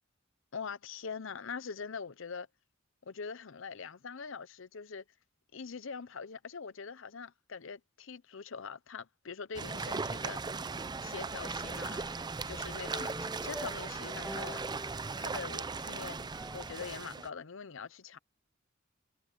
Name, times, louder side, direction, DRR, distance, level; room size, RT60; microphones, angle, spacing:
voice 1, 0.5-2.5 3.0-5.0 5.5-10.7 11.0-12.1 12.4-14.6 15.2-16.3 16.5-18.2, left 5 dB, 70° left, 0.8 m, -43 dB
sound 1, 9.5-17.3, right 4 dB, 20° right, 0.5 m, -38 dB
sound 2, 11.4-16.9, equal, 5° right, 1.7 m, -47 dB
head